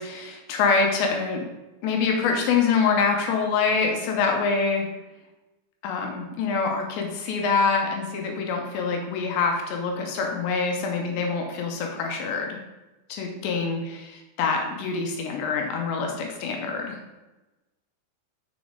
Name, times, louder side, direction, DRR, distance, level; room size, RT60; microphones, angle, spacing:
voice 1, 0.0-1.5 1.8-4.9 5.8-12.6 13.1-17.0, left 5 dB, 80° left, 2 dB, 2.8 m, -25 dB
6.7 x 4.1 x 3.6 m, 1.1 s
omnidirectional pair, 5.3 m